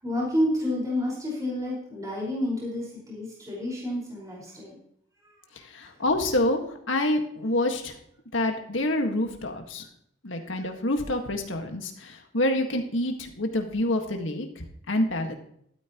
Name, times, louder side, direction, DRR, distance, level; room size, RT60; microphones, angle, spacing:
voice 1, 0.0-4.7, left 1 dB, 20° right, -5 dB, 5.1 m, -29 dB
voice 2, 5.6-7.9 8.3-9.8 10.2-15.3, left 1 dB, 85° left, 4 dB, 1.8 m, -27 dB
13.0 x 12.5 x 3.1 m, 0.68 s
head